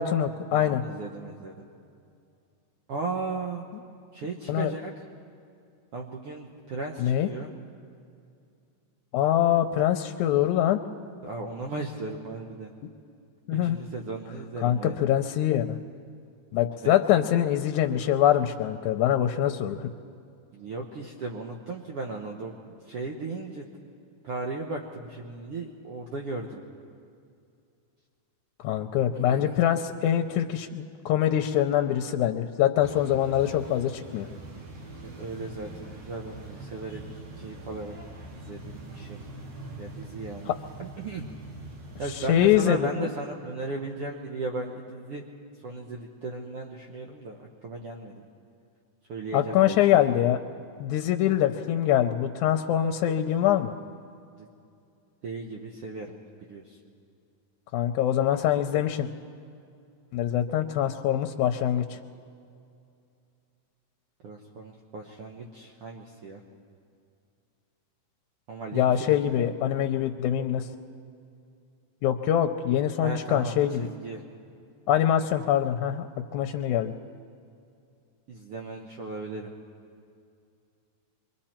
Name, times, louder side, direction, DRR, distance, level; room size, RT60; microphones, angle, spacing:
voice 1, 0.0-0.8 4.5-4.7 7.0-7.3 9.1-10.8 13.5-13.8 14.6-15.8 16.5-19.8 28.6-34.3 42.3-43.1 49.3-50.4 50.8-53.7 57.7-59.1 60.1-61.9 68.7-70.7 72.0-73.9 74.9-76.1 76.3-76.9, left 11 dB, 80° left, 5 dB, 2.0 m, -24 dB
voice 2, 0.5-1.6 2.9-3.7 4.1-5.0 5.9-7.5 11.2-12.7 13.6-15.0 16.8-17.4 20.5-23.7 24.2-26.6 29.1-29.6 35.0-37.0 37.4-38.0 38.5-39.3 39.8-40.5 40.8-41.3 42.0-45.2 45.6-48.3 49.1-49.9 54.4-54.5 55.2-56.8 64.2-66.4 68.5-69.5 73.0-74.2 78.3-79.5, right 3 dB, 60° right, 0 dB, 1.7 m, -36 dB
sound 1, 32.8-42.6, right 1 dB, 90° right, 4.0 m, -43 dB
26.0 x 23.0 x 4.4 m, 2.5 s
omnidirectional pair, 3.5 m